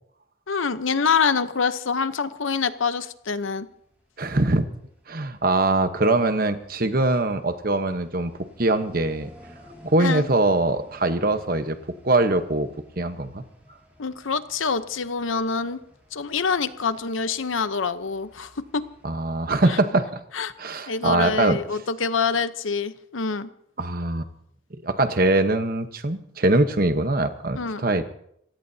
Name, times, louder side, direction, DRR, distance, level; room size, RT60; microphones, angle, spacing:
voice 1, 0.5-3.7 10.0-10.3 14.0-15.8 16.1-18.9 19.7-19.8 20.3-20.5 20.9-23.5 27.6-27.9, left 5 dB, 85° left, 12 dB, 0.9 m, -26 dB
sound 1, 3.2-19.8, equal, 10° right, 6.8 m, -53 dB
voice 2, 4.2-4.7 5.1-8.3 8.6-9.3 9.8-11.8 12.0-12.7 13.0-13.4 19.0-20.2 20.6-21.6 23.8-24.2 24.8-28.0, right 2 dB, 45° right, 9 dB, 1.2 m, -22 dB
27.5 x 17.0 x 2.8 m, 0.71 s
head